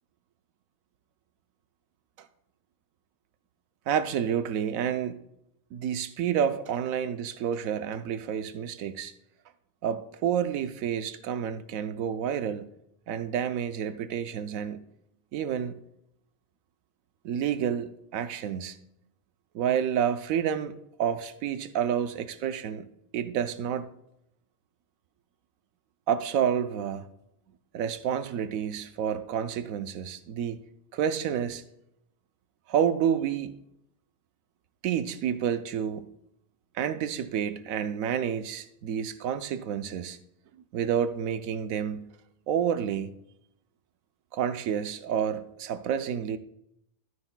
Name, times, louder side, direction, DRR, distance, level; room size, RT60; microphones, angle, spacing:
voice 1, 3.9-5.2 5.7-9.1 9.8-12.7 13.1-14.9 15.3-15.8 17.2-18.8 19.5-22.9 23.1-23.9 26.1-27.1 27.7-30.6 30.9-31.6 32.7-33.5 34.8-36.1 36.7-40.2 40.7-42.1 42.5-43.1 44.3-46.4, right 8 dB, 90° right, 1.1 m, -29 dB
12.5 x 9.5 x 2.2 m
omnidirectional pair, 1.4 m